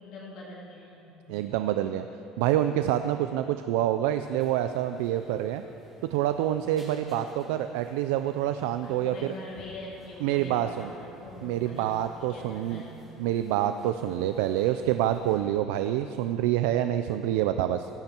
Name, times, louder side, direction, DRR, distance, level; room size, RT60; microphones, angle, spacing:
voice 1, 0.0-1.2 8.8-13.0, left 2 dB, 50° left, -5 dB, 2.9 m, -44 dB
voice 2, 1.3-2.1 2.4-5.6 6.1-9.3 10.2-10.9 11.4-12.8 13.2-17.9, right 12 dB, 90° right, 9 dB, 0.5 m, -27 dB
sound 1, 4.4-15.4, equal, 10° right, 4.4 m, -54 dB
19.0 x 15.5 x 4.5 m, 3.0 s
cardioid pair, 155°, 0 cm